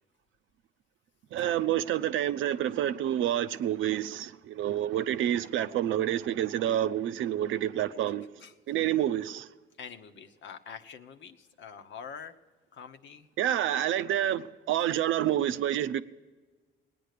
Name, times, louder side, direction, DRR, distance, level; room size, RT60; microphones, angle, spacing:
voice 1, 1.3-8.3 8.7-9.5 13.4-16.0, right 11 dB, 80° right, 0.6 m, -28 dB
voice 2, 9.8-12.3 12.7-13.3, left 7 dB, 70° left, 1.0 m, -45 dB
19.0 x 9.4 x 6.7 m
cardioid pair, 90°, 20 cm